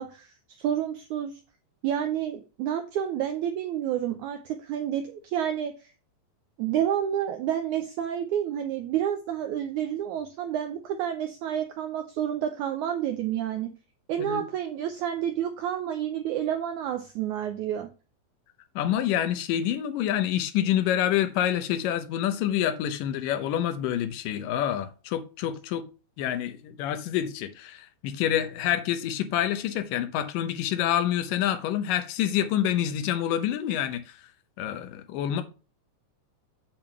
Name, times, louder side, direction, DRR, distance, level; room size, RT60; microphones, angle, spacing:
voice 1, 0.0-1.3 1.8-5.9 6.6-13.7 14.1-17.9, right 10 dB, 90° right, 1.7 m, -29 dB
voice 2, 18.8-25.8 26.2-34.2 34.6-35.4, left 11 dB, 75° left, 2.3 m, -27 dB
8.8 x 3.5 x 6.7 m
omnidirectional pair, 4.3 m